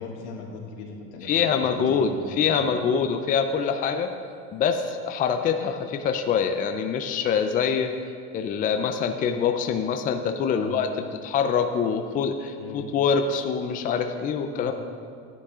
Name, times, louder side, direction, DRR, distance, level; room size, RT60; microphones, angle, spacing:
voice 1, 0.0-2.7 9.0-9.1 10.5-10.8 12.6-12.8 14.5-14.8, left 4 dB, 90° left, -1 dB, 2.3 m, -39 dB
voice 2, 1.2-4.1 4.5-7.9 8.3-10.9 11.2-14.7, left 6 dB, 25° left, 6 dB, 0.5 m, -25 dB
13.5 x 10.0 x 3.7 m, 2.2 s
supercardioid pair, 140°, 35 cm